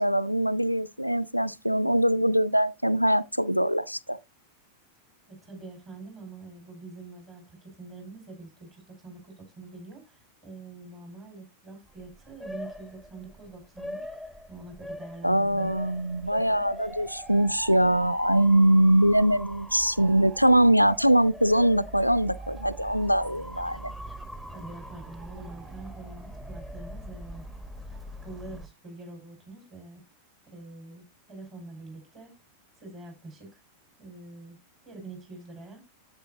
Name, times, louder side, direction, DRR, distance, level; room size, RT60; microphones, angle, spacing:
voice 1, 0.0-4.2 15.2-23.9, right 1 dB, 90° left, 0.4 m, -22 dB
voice 2, 5.3-15.7 16.2-16.7 24.5-27.5 27.8-28.0 28.2-30.0 30.5-32.3 32.8-33.6 34.0-34.6 34.8-35.8, right 2 dB, 30° right, 5.2 m, -45 dB
Motor vehicle (road) / Siren, 11.9-28.7, equal, 10° right, 1.1 m, -42 dB
10.0 x 8.0 x 2.8 m
figure-of-eight pair, 90°, 0 cm